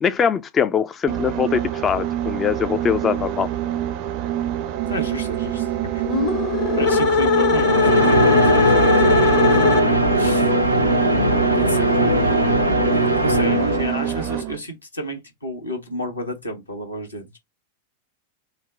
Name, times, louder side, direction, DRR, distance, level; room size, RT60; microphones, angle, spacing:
voice 1, 0.0-3.5, left 7 dB, 25° left, 0.3 m, -22 dB
sound 1, 1.1-14.6, right 11 dB, 45° right, 0.5 m, -26 dB
voice 2, 4.9-6.1 6.7-9.7 10.1-10.6 11.5-12.6 13.2-17.4, equal, 80° left, 1.2 m, -30 dB
sound 2, 6.0-10.2, left 5 dB, 45° left, 0.8 m, -20 dB
sound 3, 7.4-14.2, right 1 dB, 90° right, 0.5 m, -19 dB
4.0 x 2.0 x 4.4 m
figure-of-eight pair, 90°, 0 cm